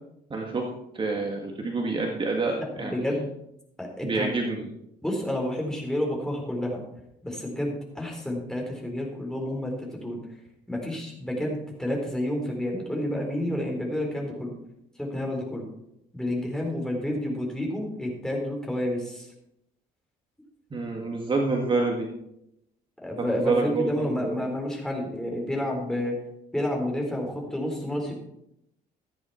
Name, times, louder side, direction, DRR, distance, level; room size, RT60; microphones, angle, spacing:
voice 1, 0.3-0.7 0.9-3.0 4.0-4.7 20.7-22.1 23.2-24.4, right 3 dB, 30° right, 1 dB, 1.8 m, -27 dB
voice 2, 2.6-3.4 3.8-4.3 5.0-6.8 7.2-10.2 10.7-14.5 15.0-15.7 16.1-19.3 23.0-26.2 26.5-28.1, left 1 dB, 5° left, -1 dB, 4.2 m, -30 dB
14.0 x 10.0 x 4.4 m, 0.80 s
cardioid pair, 110°, 17 cm